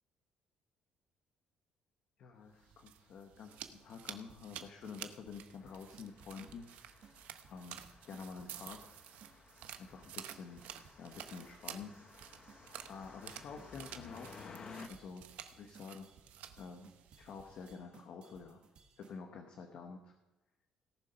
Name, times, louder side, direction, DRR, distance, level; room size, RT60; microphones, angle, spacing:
voice 1, 2.2-7.1 7.5-8.9 9.8-10.6 11.0-11.9 12.9-14.6 14.9-15.3 15.5-16.1 16.6-16.9 17.2-18.6 19.0-20.1, left 5 dB, 50° left, 3 dB, 1.2 m, -49 dB
sound 1, 2.5-17.8, right 11 dB, 85° right, 0.8 m, -52 dB
sound 2, 3.4-19.2, right 6 dB, 45° right, 1.7 m, -63 dB
sound 3, 5.6-14.9, left 5 dB, 30° left, 0.8 m, -56 dB
17.5 x 7.1 x 5.7 m, 1.0 s
cardioid pair, 180°, 3 cm